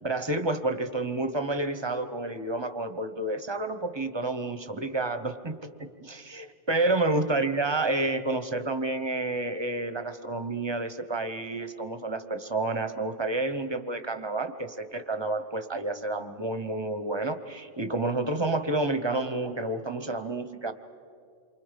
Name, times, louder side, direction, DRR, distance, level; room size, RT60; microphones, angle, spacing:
voice 1, 0.0-20.7, right 2 dB, 25° right, 10 dB, 0.9 m, -30 dB
28.0 x 24.5 x 5.2 m, 2.3 s
omnidirectional pair, 1.2 m